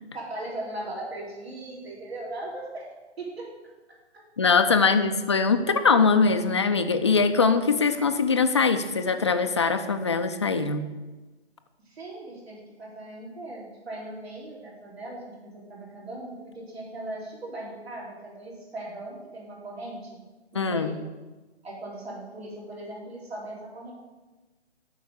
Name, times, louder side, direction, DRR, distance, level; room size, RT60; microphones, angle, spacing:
voice 1, 0.1-2.9 3.2-3.5 4.8-4.9 11.8-15.3 15.7-20.1 20.5-21.0 21.6-23.9, right 1 dB, 65° right, -4 dB, 3.5 m, -38 dB
voice 2, 4.4-10.8 20.5-21.0, left 4 dB, 25° left, 8 dB, 0.4 m, -22 dB
8.2 x 5.8 x 6.6 m, 1.2 s
figure-of-eight pair, 140°, 33 cm